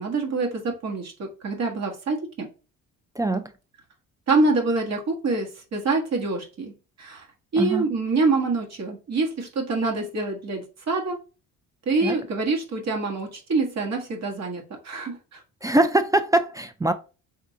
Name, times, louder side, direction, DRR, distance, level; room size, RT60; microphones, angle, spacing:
voice 1, 0.0-2.5 4.3-6.7 7.0-7.2 7.5-11.2 11.8-15.4, right 3 dB, 55° right, 1.4 m, -26 dB
voice 2, 3.2-3.5 7.6-7.9 12.0-12.2 15.6-16.9, right 2 dB, 10° right, 0.3 m, -22 dB
3.6 x 2.7 x 4.3 m
cardioid pair, 110°, 32 cm